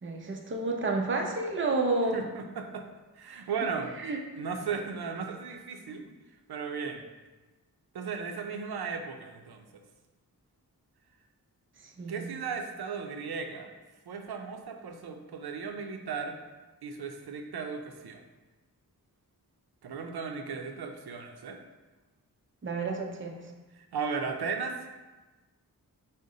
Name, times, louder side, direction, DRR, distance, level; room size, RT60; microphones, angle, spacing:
voice 1, 0.0-2.2 3.3-3.4 4.0-4.2 11.8-12.3 22.6-23.5, right 3 dB, 35° right, 1 dB, 0.6 m, -30 dB
voice 2, 2.1-2.9 3.2-3.9 4.4-6.0 6.5-7.0 7.9-9.6 12.1-13.7 14.1-16.4 16.8-18.2 19.8-21.6 23.8-24.8, right 5 dB, 90° right, 4 dB, 0.5 m, -36 dB
5.2 x 2.1 x 3.7 m, 1.2 s
wide cardioid pair, 70°, 37 cm